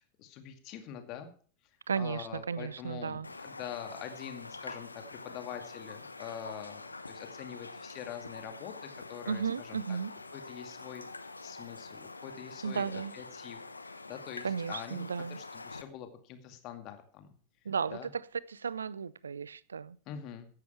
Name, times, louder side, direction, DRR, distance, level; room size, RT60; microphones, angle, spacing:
voice 1, 0.0-1.3 2.0-10.0 10.3-11.0 11.4-17.3 17.9-18.1 20.1-20.5, left 9 dB, 40° left, 7 dB, 2.3 m, -45 dB
voice 2, 1.9-3.3 9.3-10.1 12.6-13.1 14.4-15.4 17.6-18.0 18.5-20.0, right 6 dB, 70° right, 22 dB, 0.6 m, -34 dB
Raindrop, 3.2-15.8, left 3 dB, 80° left, 1.0 m, -46 dB
15.5 x 11.0 x 4.5 m, 0.43 s
figure-of-eight pair, 90°, 0 cm